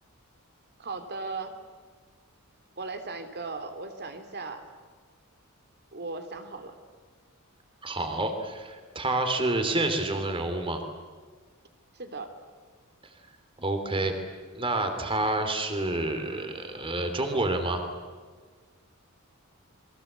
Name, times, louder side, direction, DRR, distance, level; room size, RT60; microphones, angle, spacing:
voice 1, 0.8-1.6 2.8-4.6 5.9-6.8 11.9-12.3, right 3 dB, 50° right, 7 dB, 3.1 m, -37 dB
voice 2, 7.8-10.8 13.6-14.1 14.5-17.8, right 2 dB, 25° right, 7 dB, 3.1 m, -28 dB
29.0 x 23.0 x 8.3 m, 1.5 s
head